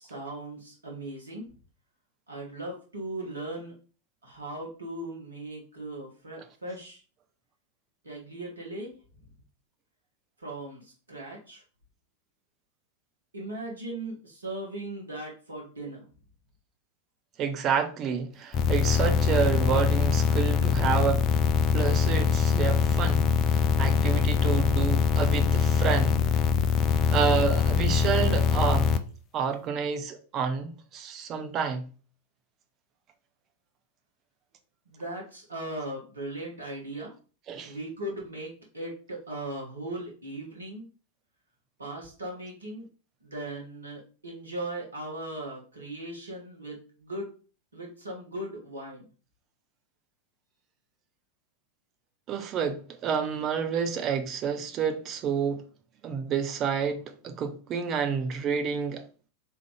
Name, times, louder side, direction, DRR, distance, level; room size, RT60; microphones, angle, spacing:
voice 1, 0.0-1.5 2.3-3.7 4.2-7.0 8.0-8.9 10.4-11.6 13.3-16.1 34.9-37.1 37.6-40.8 41.8-42.8 43.2-47.3 47.7-49.1, right 1 dB, 75° right, 1.2 m, -38 dB
voice 2, 17.4-21.3 21.7-26.2 27.1-28.9 29.3-31.9 37.5-37.7 52.3-55.6 56.0-59.0, right 7 dB, 30° right, 0.6 m, -29 dB
sound 1, 18.5-29.0, left 7 dB, 35° left, 0.4 m, -23 dB
3.6 x 3.3 x 3.2 m
figure-of-eight pair, 90°, 0 cm